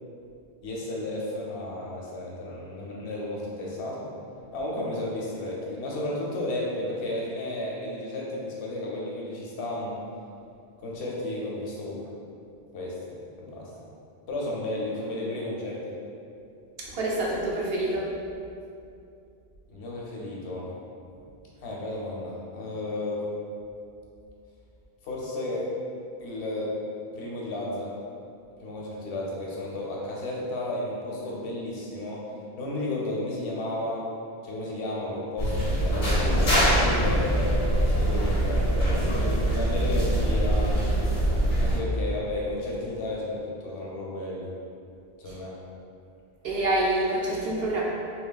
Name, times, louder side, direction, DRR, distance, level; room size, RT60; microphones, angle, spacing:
voice 1, 0.6-4.1 4.5-10.0 10.8-12.0 12.7-13.9 14.3-15.9 19.7-20.7 21.6-23.2 25.0-25.7 26.2-26.7 27.1-27.9 28.6-32.2 32.6-34.0 34.4-40.8 41.6-44.5 45.2-45.6, left 1 dB, 85° left, -4 dB, 0.9 m, -33 dB
voice 2, 16.8-18.1 46.4-47.8, right 1 dB, 70° right, -5 dB, 0.8 m, -27 dB
sound 1, 35.4-41.8, right 1 dB, 60° left, 0.6 m, -23 dB
2.9 x 2.2 x 2.2 m, 2.6 s
omnidirectional pair, 1.1 m